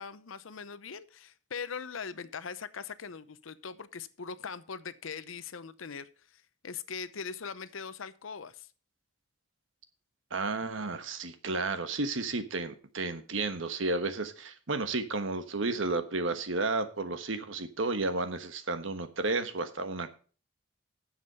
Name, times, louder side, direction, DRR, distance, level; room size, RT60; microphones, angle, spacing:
voice 1, 0.0-8.7, left 6 dB, 90° left, 15 dB, 0.7 m, -41 dB
voice 2, 10.3-20.2, right 3 dB, 80° right, 9 dB, 1.3 m, -32 dB
9.6 x 7.4 x 5.5 m, 0.38 s
head